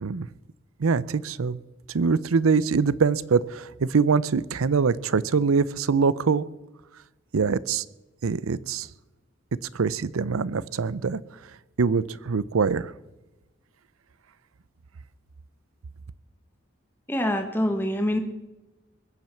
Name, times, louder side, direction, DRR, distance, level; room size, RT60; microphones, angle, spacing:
voice 1, 0.8-1.6 1.9-6.4 7.3-7.8 8.2-8.9 9.7-11.2 11.8-12.9, right 5 dB, 85° right, 19 dB, 0.6 m, -23 dB
voice 2, 17.1-18.2, left 1 dB, 10° left, 5 dB, 1.4 m, -25 dB
21.5 x 7.6 x 7.1 m, 1.0 s
head